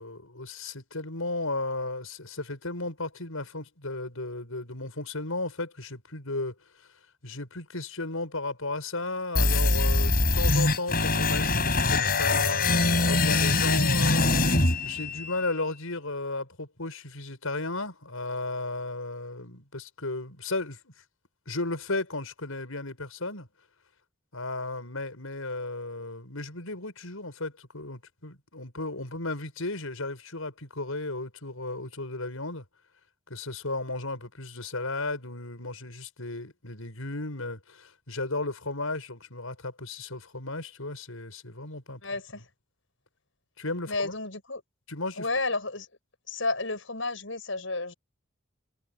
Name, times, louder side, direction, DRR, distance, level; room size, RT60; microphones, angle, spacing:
voice 1, 0.0-6.5 7.2-20.9 21.5-23.5 24.3-32.6 33.3-42.0 43.6-44.1 44.9-45.3, left 2 dB, 85° left, 6.6 m, -34 dB
sound 1, 9.4-15.4, left 3 dB, 45° left, 6.7 m, -23 dB
voice 2, 42.0-42.4 43.9-44.6 45.2-45.9 46.3-47.9, left 3 dB, 65° left, 7.8 m, -31 dB
head